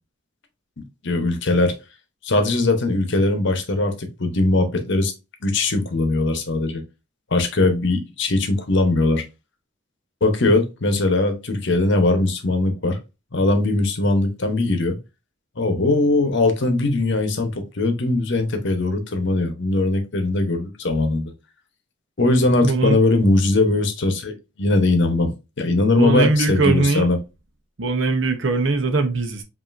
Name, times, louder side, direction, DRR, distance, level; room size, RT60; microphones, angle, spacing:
voice 1, 1.0-1.8 2.2-5.1 5.4-6.8 7.3-9.2 10.2-13.0 13.3-15.0 15.6-21.3 22.2-25.3 25.6-27.2, left 2 dB, 60° left, 0.9 m, -20 dB
voice 2, 22.6-23.0 26.0-27.1 27.8-29.4, right 3 dB, 60° right, 0.8 m, -20 dB
5.5 x 2.7 x 2.5 m
head